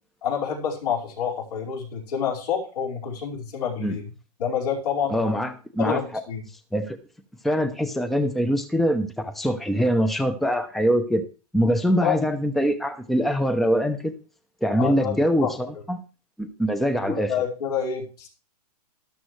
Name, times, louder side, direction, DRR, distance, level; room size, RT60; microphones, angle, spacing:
voice 1, 0.2-4.0 4.4-5.4 5.8-6.4 12.0-12.2 14.7-15.5 17.0-18.3, left 7 dB, 75° left, -2 dB, 5.1 m, -28 dB
voice 2, 5.1-6.0 6.7-7.0 7.4-11.2 11.5-14.1 14.6-16.0 16.4-17.3, equal, ahead, 9 dB, 0.7 m, -23 dB
13.0 x 12.0 x 3.2 m, 0.34 s
hypercardioid pair, 145°, 20 cm